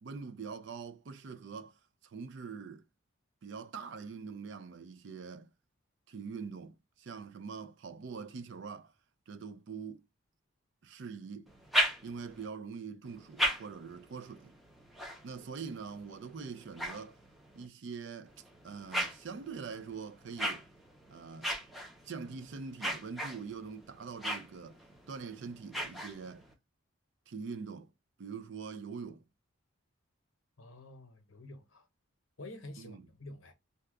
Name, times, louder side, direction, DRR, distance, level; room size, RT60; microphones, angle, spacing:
voice 1, 0.0-1.7 2.0-2.8 3.4-5.5 6.1-8.9 9.3-10.0 10.8-11.5 12.0-14.6 15.2-17.2 17.5-18.3 18.6-20.6 21.1-21.5 22.0-24.8 25.1-26.5 27.3-27.9 28.2-29.2 32.8-33.1, right 5 dB, 55° right, 0.4 m, -43 dB
sound 1, 11.5-12.5 13.1-17.7 18.3-26.5, equal, ahead, 0.5 m, -38 dB
voice 2, 30.6-31.9 32.4-33.5, left 2 dB, 70° left, 0.8 m, -49 dB
2.8 x 2.2 x 3.5 m
head